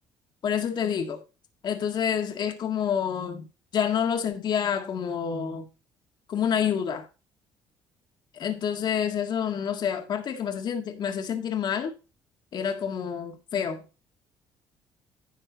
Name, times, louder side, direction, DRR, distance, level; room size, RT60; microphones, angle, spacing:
voice 1, 0.4-1.2 1.6-3.5 3.7-5.7 6.3-7.1 8.3-12.0 12.5-13.8, left 8 dB, 55° left, 1.7 m, -28 dB
11.0 x 6.6 x 4.0 m
supercardioid pair, 85°, 9 cm